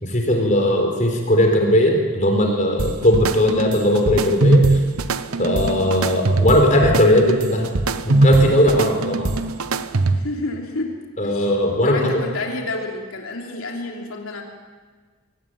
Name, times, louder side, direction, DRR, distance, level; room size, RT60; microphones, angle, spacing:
voice 1, 0.0-4.8 5.4-7.7 8.0-9.3 11.2-12.2, left 1 dB, 35° left, 3 dB, 4.1 m, -18 dB
sound 1, 2.8-10.4, right 2 dB, 85° right, 1.0 m, -21 dB
voice 2, 10.1-11.5 11.8-14.4, left 2 dB, 75° left, 1 dB, 3.1 m, -29 dB
24.5 x 18.5 x 9.2 m, 1.5 s
head